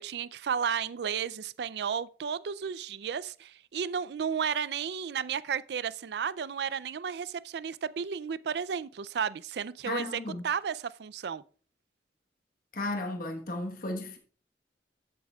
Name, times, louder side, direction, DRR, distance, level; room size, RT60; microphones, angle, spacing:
voice 1, 0.0-11.4, right 7 dB, 65° right, 0.4 m, -33 dB
voice 2, 9.9-10.4 12.7-14.2, left 2 dB, 55° left, 1.2 m, -34 dB
13.5 x 8.4 x 2.3 m
head